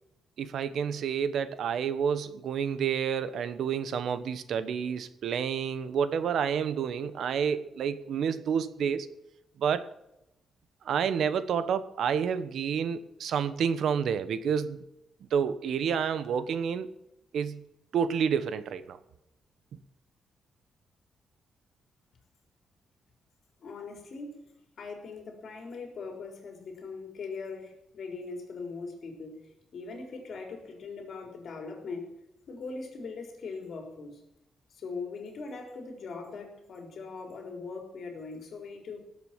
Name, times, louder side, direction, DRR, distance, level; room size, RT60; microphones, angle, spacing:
voice 1, 0.4-9.1 9.6-9.9 10.8-14.8 15.3-16.9 17.3-17.7 17.9-19.0 19.7-19.8, right 7 dB, 70° right, 13 dB, 1.2 m, -29 dB
voice 2, 23.6-24.5 24.8-29.4 29.7-32.1 32.5-34.2 34.7-39.0, left 4 dB, 55° left, 3 dB, 4.0 m, -40 dB
17.5 x 7.9 x 7.5 m, 0.86 s
cardioid pair, 125°, 0 cm